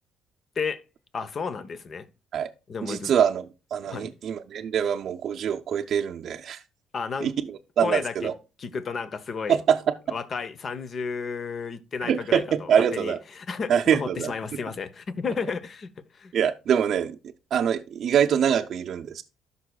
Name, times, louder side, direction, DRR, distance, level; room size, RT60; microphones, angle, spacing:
voice 1, 1.1-2.1 2.7-3.1 3.8-4.1 6.9-7.3 7.8-8.3 8.6-9.6 10.1-16.3, left 5 dB, 45° left, 0.9 m, -32 dB
voice 2, 2.8-6.6 7.2-8.3 9.5-9.8 12.0-13.2 13.7-14.3 16.3-17.2 17.5-19.2, right 8 dB, 60° right, 0.5 m, -24 dB
13.5 x 5.5 x 2.3 m
supercardioid pair, 80°, 0 cm